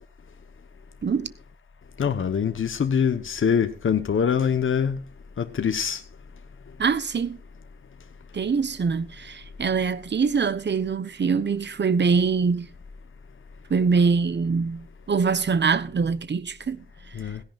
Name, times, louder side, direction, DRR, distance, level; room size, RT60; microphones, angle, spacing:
voice 1, 2.0-5.0 5.4-6.0 17.1-17.4, left 7 dB, 80° left, 1.0 m, -24 dB
voice 2, 6.8-7.4 8.3-12.7 13.7-16.8, right 5 dB, 60° right, 1.0 m, -24 dB
17.5 x 16.5 x 2.5 m
wide cardioid pair, 95°, 20 cm